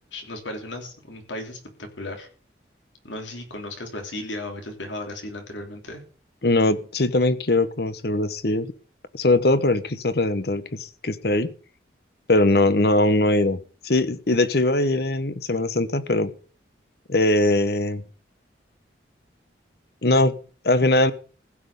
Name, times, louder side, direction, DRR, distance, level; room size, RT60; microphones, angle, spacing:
voice 1, 0.1-2.3 3.0-6.0, left 1 dB, 85° left, 4 dB, 3.1 m, -35 dB
voice 2, 6.4-8.7 9.1-11.5 12.3-16.3 17.1-18.0 20.0-20.3 20.6-21.1, left 2 dB, 55° left, 14 dB, 1.0 m, -21 dB
15.5 x 6.1 x 8.3 m, 0.40 s
head